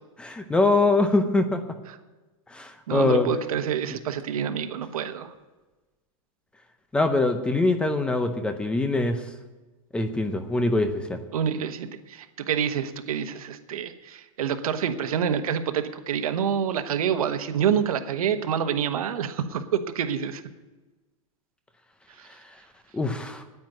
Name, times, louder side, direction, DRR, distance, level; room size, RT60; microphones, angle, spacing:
voice 1, 0.2-1.6 2.5-3.3 6.9-9.2 9.9-11.2 22.9-23.4, left 2 dB, 5° left, 9 dB, 0.6 m, -23 dB
voice 2, 2.9-5.3 11.3-20.4 22.2-22.3, right 8 dB, 90° right, 8 dB, 1.2 m, -27 dB
9.4 x 9.4 x 9.3 m, 1.2 s
supercardioid pair, 165°, 18 cm